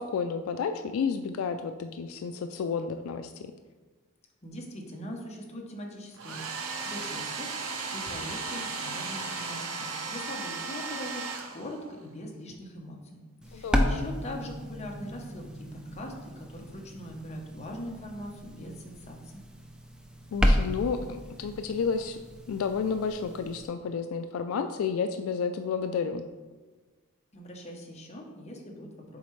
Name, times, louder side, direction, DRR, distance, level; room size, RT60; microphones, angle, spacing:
voice 1, 0.0-3.5 13.5-14.0 20.3-22.2 22.5-26.2, left 5 dB, 80° left, 8 dB, 0.3 m, -31 dB
voice 2, 4.4-19.4 27.3-29.2, left 1 dB, 30° left, 0 dB, 0.9 m, -42 dB
Domestic sounds home sounds, 6.1-12.0, right 4 dB, 80° right, 0.7 m, -36 dB
sound 1, 13.4-23.7, equal, 5° right, 0.4 m, -32 dB
7.1 x 4.2 x 3.2 m, 1.3 s
head